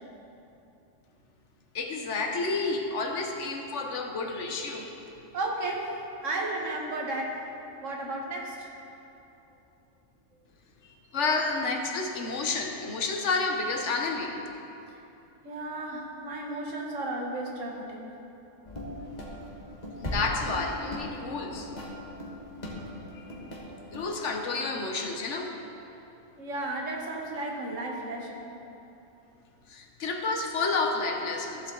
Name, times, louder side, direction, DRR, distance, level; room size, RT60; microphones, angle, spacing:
voice 1, 1.7-4.9 11.1-14.4 20.0-21.7 23.9-25.5 29.7-31.7, left 3 dB, 70° left, 3 dB, 1.3 m, -30 dB
voice 2, 5.3-5.9 6.2-7.4 7.8-8.7 15.4-17.9 26.4-28.5, right 2 dB, 85° right, -1 dB, 1.8 m, -33 dB
sound 1, 18.6-24.0, left 1 dB, 35° left, 1.6 m, -39 dB
15.0 x 7.3 x 3.8 m, 2.9 s
omnidirectional pair, 1.3 m